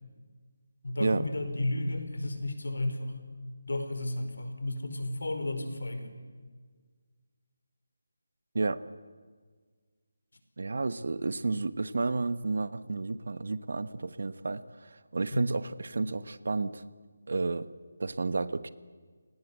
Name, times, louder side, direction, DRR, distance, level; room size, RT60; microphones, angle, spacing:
voice 1, 0.8-3.1 3.7-6.1 15.3-15.5, left 1 dB, 90° left, 7 dB, 4.7 m, -33 dB
voice 2, 10.6-14.6 15.1-16.8 17.3-17.6 18.0-18.7, right 3 dB, 60° right, 15 dB, 1.2 m, -31 dB
29.5 x 19.0 x 8.2 m, 1.5 s
figure-of-eight pair, 175°, 0 cm